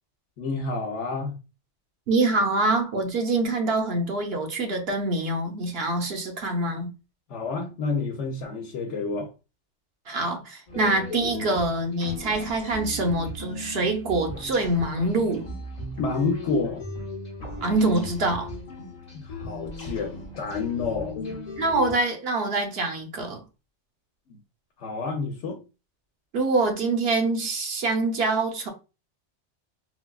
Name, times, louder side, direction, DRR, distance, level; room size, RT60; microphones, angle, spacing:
voice 1, 0.4-1.3 7.3-9.3 16.0-16.8 19.1-21.2 24.3-24.4 24.8-25.6, left 4 dB, 80° left, 1.0 m, -29 dB
voice 2, 2.1-6.9 10.1-15.5 17.6-18.5 21.6-23.4 26.3-28.7, right 2 dB, 60° right, 0.9 m, -25 dB
sound 1, 10.7-21.9, left 3 dB, 40° left, 0.9 m, -36 dB
4.0 x 2.2 x 2.3 m
omnidirectional pair, 1.2 m